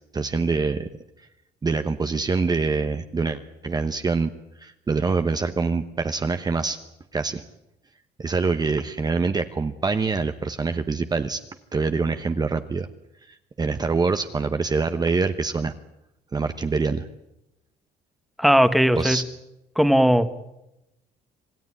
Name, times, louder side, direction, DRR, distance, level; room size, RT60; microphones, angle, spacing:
voice 1, 0.1-0.9 1.6-4.3 4.6-6.8 7.1-7.4 8.2-11.4 11.7-12.9 13.3-15.7 16.3-17.1 18.9-19.2, right 4 dB, 25° right, 8 dB, 1.0 m, -25 dB
voice 2, 18.4-19.2 19.7-20.3, equal, ahead, 11 dB, 1.5 m, -18 dB
27.0 x 16.5 x 9.9 m, 0.92 s
cardioid pair, 110°, 17 cm